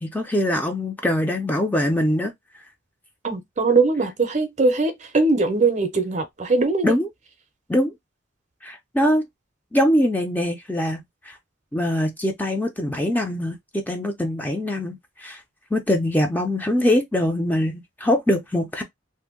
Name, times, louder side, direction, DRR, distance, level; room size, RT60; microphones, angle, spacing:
voice 1, 0.0-2.3 6.8-7.1 7.7-7.9 8.6-9.2 9.7-11.4 11.7-13.6 13.9-15.4 15.7-18.8, left 1 dB, 10° left, 0.4 m, -23 dB
voice 2, 3.2-6.9, right 3 dB, 35° right, 0.6 m, -21 dB
2.6 x 2.1 x 3.6 m
head